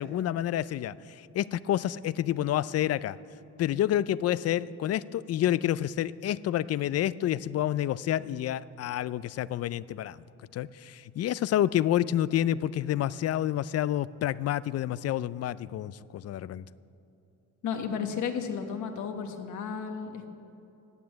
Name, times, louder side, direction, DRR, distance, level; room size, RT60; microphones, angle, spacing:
voice 1, 0.0-3.2 3.6-10.2 10.5-16.6, left 12 dB, 55° left, 18 dB, 0.5 m, -29 dB
voice 2, 17.6-20.3, left 6 dB, 75° left, 5 dB, 1.5 m, -33 dB
15.0 x 9.4 x 8.7 m, 2.8 s
cardioid pair, 90°, 30 cm